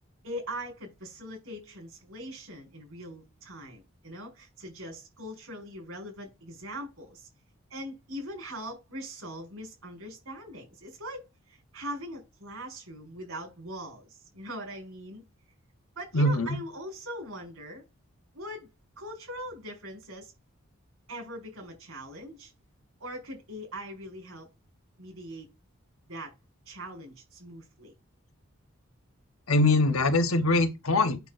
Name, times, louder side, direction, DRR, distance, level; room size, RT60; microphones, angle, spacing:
voice 1, 0.2-7.3 7.7-15.2 16.0-17.8 18.3-18.7 19.0-20.3 21.1-22.5 23.0-24.5 25.0-25.5 26.1-26.3 26.7-27.9, equal, 85° right, 5.4 m, -41 dB
voice 2, 16.1-16.6 29.5-31.2, left 2 dB, 80° left, 1.2 m, -23 dB
9.0 x 6.5 x 2.6 m
head